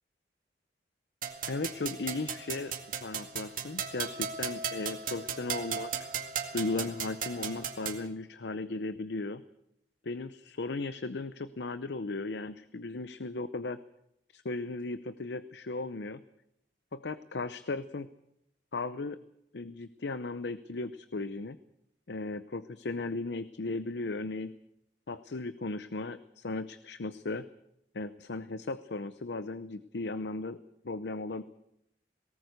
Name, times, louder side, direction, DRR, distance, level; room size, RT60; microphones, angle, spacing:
sound 1, 1.2-8.0, right 7 dB, 50° right, 2.1 m, -36 dB
voice 1, 1.5-2.7 3.0-5.9 6.5-9.4 10.0-13.8 14.3-16.2 16.9-18.1 18.7-19.2 19.5-21.6 22.1-24.5 25.1-27.5 27.9-30.6 30.8-31.4, left 3 dB, 75° left, 13 dB, 0.7 m, -36 dB
19.0 x 18.0 x 8.1 m, 0.78 s
head